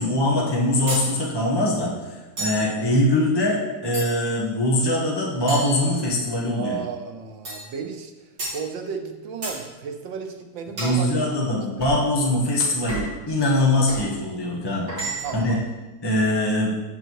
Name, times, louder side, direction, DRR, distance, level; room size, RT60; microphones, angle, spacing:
voice 1, 0.0-6.8 10.8-14.9 15.3-15.6 16.0-16.7, left 1 dB, 15° left, -4 dB, 1.2 m, -22 dB
sound 1, 0.9-1.1 2.4-2.7 3.9-4.4 5.5-6.4 7.4-7.7 8.4-8.6 9.4-9.6 10.8-11.0 11.8-12.0 12.9-13.2 13.9-14.1 14.9-15.5, right 2 dB, 60° right, 4.4 m, -32 dB
voice 2, 6.5-8.1 8.5-11.2 15.2-15.6, right 6 dB, 85° right, 5 dB, 1.6 m, -33 dB
7.9 x 7.7 x 4.7 m, 1.2 s
omnidirectional pair, 2.0 m